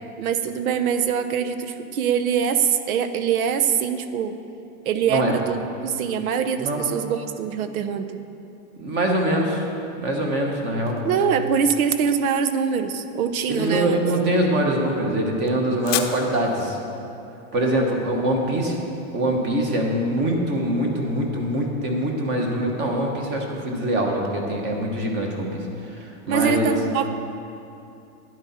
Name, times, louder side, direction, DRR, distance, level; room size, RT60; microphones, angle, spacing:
voice 1, 0.2-4.4 4.8-8.2 11.0-14.0 26.3-27.1, right 7 dB, 80° right, 10 dB, 0.9 m, -23 dB
voice 2, 8.8-9.6 10.0-11.0 13.5-16.8 17.5-18.8 19.1-26.7, right 1 dB, 25° right, 1 dB, 1.2 m, -23 dB
sound 1, 10.3-19.4, left 11 dB, 45° left, 0.7 m, -37 dB
12.0 x 9.7 x 4.3 m, 2.8 s
supercardioid pair, 160°, 42 cm